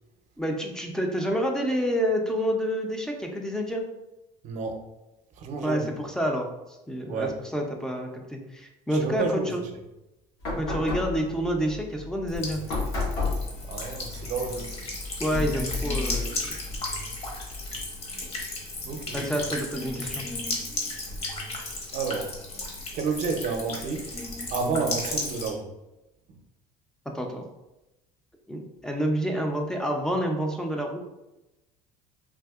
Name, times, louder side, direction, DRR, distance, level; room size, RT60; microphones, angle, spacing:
voice 1, 0.4-3.8 5.6-6.5 6.9-9.6 10.6-12.6 15.2-16.5 19.1-20.3 27.1-27.5 28.5-31.0, equal, 5° left, 2 dB, 0.4 m, -28 dB
voice 2, 4.4-4.8 5.3-5.9 7.1-7.5 8.9-9.7 13.7-14.7 18.8-19.4 21.9-22.4 22.9-24.0 24.5-25.7 26.3-26.4, right 4 dB, 55° right, 3 dB, 0.6 m, -30 dB
sound 1, 10.4-17.9, left 3 dB, 80° left, 1.5 m, -33 dB
Buzz / Water tap faucet / Trickle dribble, 12.3-25.5, left 2 dB, 40° left, 1.0 m, -35 dB
3.5 x 2.6 x 2.3 m, 0.96 s
supercardioid pair, 110°, 15 cm